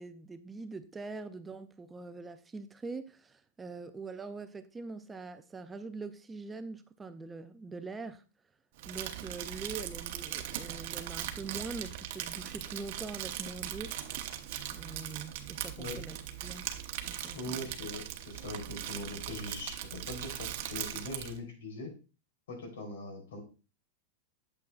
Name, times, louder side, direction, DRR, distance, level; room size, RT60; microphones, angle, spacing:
voice 1, 0.0-8.2 8.9-14.0 14.7-16.2 16.4-16.6 17.1-17.7, right 4 dB, 10° right, 0.3 m, -43 dB
Crumpling crinkling, 8.8-21.4, right 11 dB, 45° right, 0.8 m, -40 dB
voice 2, 17.3-21.9 22.5-23.4, left 2 dB, 85° left, 3.4 m, -41 dB
8.4 x 7.6 x 2.3 m
supercardioid pair, 180°, 0 cm